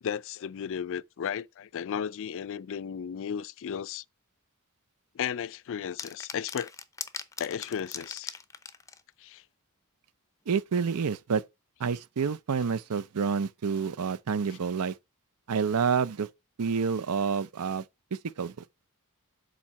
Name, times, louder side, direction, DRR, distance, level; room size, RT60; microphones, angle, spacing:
voice 1, 0.0-4.0 5.1-6.7 7.4-8.4 9.2-9.4, left 8 dB, 60° left, 0.4 m, -34 dB
sound 1, 6.0-9.0, left 5 dB, 15° left, 0.6 m, -39 dB
voice 2, 10.5-11.4 11.8-15.0 15.5-16.3 16.6-17.8 18.1-18.5, right 6 dB, 85° right, 0.5 m, -28 dB
7.4 x 4.1 x 5.4 m
head